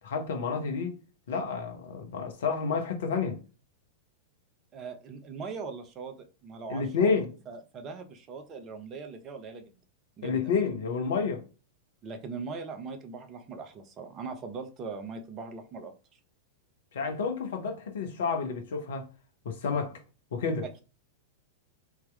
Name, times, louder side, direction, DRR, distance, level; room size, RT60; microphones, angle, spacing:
voice 1, 0.0-1.0 1.3-3.4 6.7-7.3 10.2-11.4 16.9-19.1 19.4-19.9 20.3-20.6, left 5 dB, 60° left, 1.0 m, -29 dB
voice 2, 4.7-7.1 7.5-9.8 10.2-10.5 12.0-16.2 19.7-19.8, right 4 dB, 30° right, 0.8 m, -40 dB
3.6 x 3.0 x 3.3 m
figure-of-eight pair, 95°, 0 cm